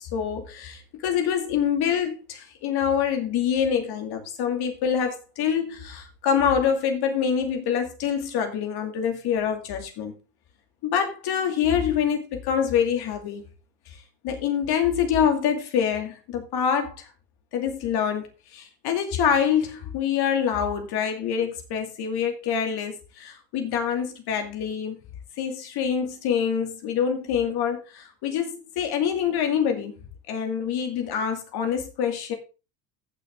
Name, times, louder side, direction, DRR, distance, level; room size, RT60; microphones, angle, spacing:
voice 1, 0.0-10.1 10.8-13.4 14.2-17.1 17.5-18.3 18.5-25.0 25.4-29.9 30.3-32.3, left 8 dB, 55° left, 2.6 m, -25 dB
14.5 x 6.2 x 3.7 m
hypercardioid pair, 85°, 47 cm